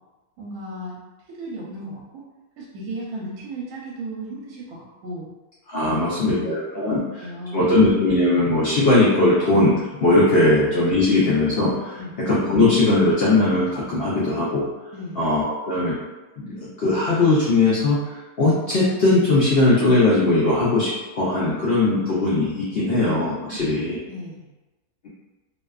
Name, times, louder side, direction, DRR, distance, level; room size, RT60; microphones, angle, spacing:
voice 1, 0.4-1.0 1.3-2.2 2.6-5.3 5.8-6.9 7.2-7.8 11.9-12.2 14.9-15.2 23.5-24.5, right 1 dB, 85° right, -5 dB, 1.1 m, -35 dB
voice 2, 5.7-7.0 7.5-14.7 15.2-16.0 16.4-24.0, left 2 dB, 75° left, -7 dB, 0.5 m, -19 dB
2.6 x 2.2 x 2.3 m, 1.1 s
omnidirectional pair, 1.6 m